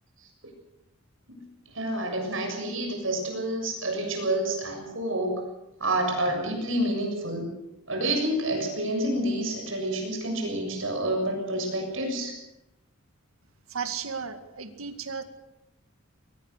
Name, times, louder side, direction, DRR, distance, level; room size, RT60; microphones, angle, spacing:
voice 1, 1.7-5.4 5.8-7.5 7.9-12.4, right 1 dB, 70° right, 3 dB, 7.2 m, -28 dB
voice 2, 13.7-15.2, right 6 dB, 85° right, 8 dB, 2.1 m, -34 dB
22.5 x 20.0 x 6.7 m, 0.89 s
head